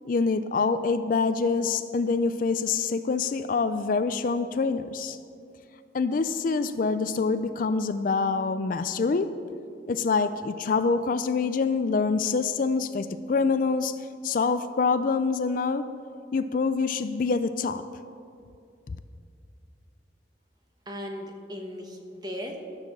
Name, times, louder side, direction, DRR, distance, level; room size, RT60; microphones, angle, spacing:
voice 1, 0.1-5.2 5.9-9.3 9.9-14.0 14.2-15.9 16.3-17.8 18.9-19.0, left 4 dB, 45° left, 11 dB, 0.4 m, -26 dB
voice 2, 20.9-22.6, equal, 20° right, 3 dB, 1.1 m, -37 dB
12.0 x 6.5 x 7.2 m, 2.4 s
head